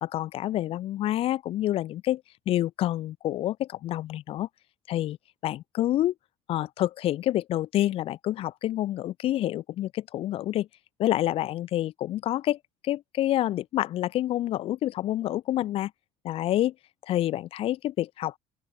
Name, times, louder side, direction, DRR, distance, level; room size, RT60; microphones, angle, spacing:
voice 1, 0.0-4.5 4.9-5.2 5.4-6.1 6.5-10.7 11.0-12.6 12.8-15.9 16.2-16.7 17.0-18.4, left 13 dB, 50° left, 1.3 m, -28 dB
open air
cardioid pair, 145°, 12 cm